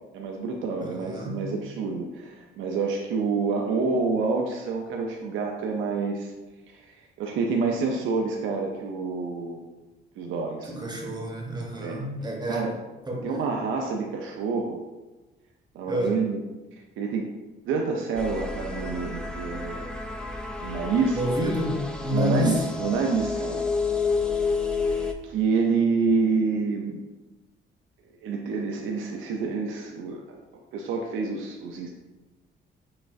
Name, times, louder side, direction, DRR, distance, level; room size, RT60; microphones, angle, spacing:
voice 1, 0.1-6.3 6.7-6.8 7.2-9.6 10.2-10.7 11.8-12.0 12.5-12.7 13.2-14.8 15.7-16.4 17.0-17.3 17.7-20.0 20.6-21.2 22.1-23.6 24.9-27.0 28.2-30.2 30.7-31.9, right 4 dB, 80° right, 1 dB, 0.5 m, -27 dB
voice 2, 0.8-1.5 10.6-12.7 13.1-13.3 15.9-16.2 21.1-22.8, equal, 20° right, -1 dB, 0.8 m, -29 dB
sound 1, 18.2-25.1, left 4 dB, 5° left, 0.3 m, -30 dB
5.8 x 2.5 x 2.4 m, 1.1 s
cardioid pair, 90°, 20 cm